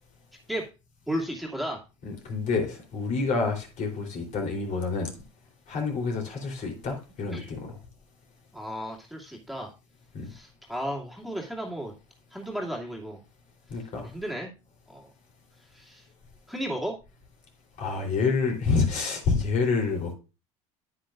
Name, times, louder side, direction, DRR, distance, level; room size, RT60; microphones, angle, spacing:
voice 1, 1.1-1.8 7.3-7.5 8.5-9.7 10.3-11.9 12.3-13.2 14.0-14.5 14.9-15.1 15.7-16.1 16.5-16.9, equal, ahead, 2.5 m, -34 dB
voice 2, 2.0-5.1 5.7-7.8 10.1-10.3 13.7-14.1 17.8-20.1, left 4 dB, 50° left, 3.6 m, -28 dB
9.5 x 9.1 x 2.5 m
supercardioid pair, 90°, 16 cm